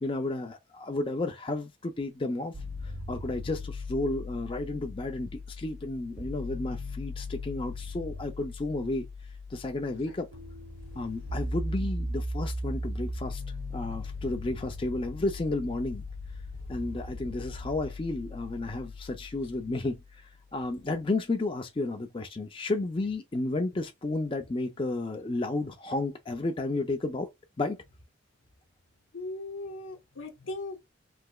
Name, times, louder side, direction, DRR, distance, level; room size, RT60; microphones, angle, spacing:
voice 1, 0.0-2.5 3.1-9.1 9.5-10.3 10.9-13.4 13.7-16.0 16.7-20.0 20.5-27.3 27.6-27.8, left 2 dB, 25° left, 0.5 m, -32 dB
sound 1, 2.5-20.5, left 1 dB, 55° right, 0.8 m, -38 dB
voice 2, 29.1-30.8, left 2 dB, 90° left, 0.9 m, -39 dB
3.2 x 2.9 x 2.3 m
head